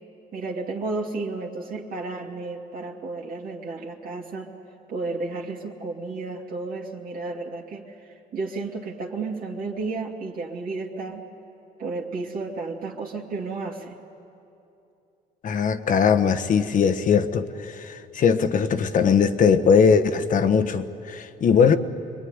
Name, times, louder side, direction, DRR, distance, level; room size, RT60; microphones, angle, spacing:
voice 1, 0.3-4.5 4.9-11.2 11.8-14.0 18.8-18.9, right 3 dB, 55° right, -1 dB, 2.6 m, -32 dB
voice 2, 15.4-21.8, left 6 dB, 50° left, 10 dB, 1.3 m, -20 dB
25.5 x 22.5 x 9.7 m, 2.8 s
cardioid pair, 110°, 17 cm